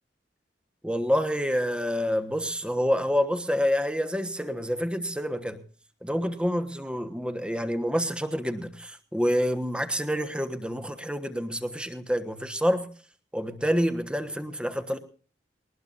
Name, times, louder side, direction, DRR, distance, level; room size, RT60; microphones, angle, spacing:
voice 1, 0.8-5.6 6.0-12.9 13.3-15.0, equal, 5° right, 1.2 m, -27 dB
21.5 x 19.5 x 2.6 m
head